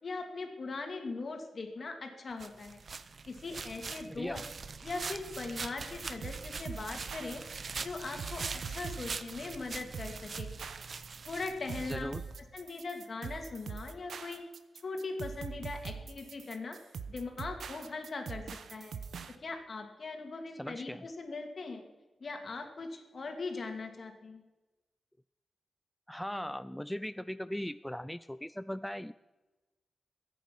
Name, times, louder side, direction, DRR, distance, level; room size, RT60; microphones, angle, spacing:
voice 1, 0.0-2.8 3.3-4.4 4.8-7.4 7.8-10.5 11.3-12.2 12.5-14.4 14.8-16.8 17.1-18.4 18.7-18.9 19.4-21.8 22.2-24.4, left 3 dB, 55° left, 4 dB, 2.5 m, -40 dB
sound 1, 2.4-12.4, right 4 dB, 55° right, 0.8 m, -43 dB
voice 2, 4.1-4.4 11.9-12.2 20.6-21.1 26.1-29.1, equal, 5° left, 14 dB, 0.4 m, -39 dB
sound 2, 5.3-19.3, right 6 dB, 85° right, 0.9 m, -43 dB
22.5 x 8.4 x 6.0 m, 1.1 s
cardioid pair, 75°, 0 cm